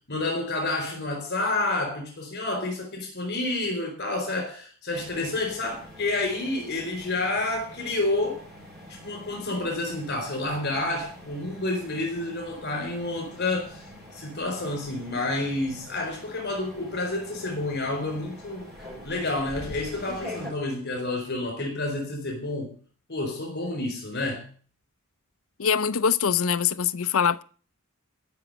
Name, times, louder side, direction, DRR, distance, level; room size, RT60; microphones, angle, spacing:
voice 1, 0.1-8.4 8.9-18.7 19.0-22.7 23.1-24.5, left 2 dB, 50° left, 4.5 m, -29 dB
sound 1, 4.9-20.5, left 1 dB, ahead, 6.5 m, -45 dB
voice 2, 25.6-27.4, left 7 dB, 70° left, 0.6 m, -23 dB
14.0 x 6.2 x 9.1 m
head